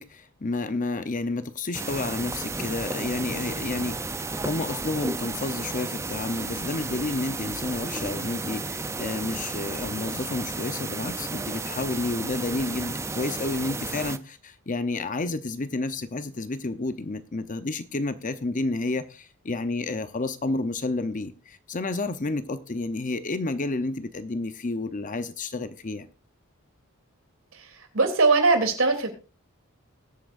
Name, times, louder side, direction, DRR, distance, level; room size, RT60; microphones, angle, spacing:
voice 1, 0.0-4.0 4.4-26.1, left 2 dB, 40° left, 0.8 m, -30 dB
sound 1, 1.7-14.2, right 3 dB, 15° right, 0.5 m, -33 dB
voice 2, 27.5-29.1, right 3 dB, 70° right, 3.0 m, -21 dB
21.5 x 8.4 x 2.6 m
head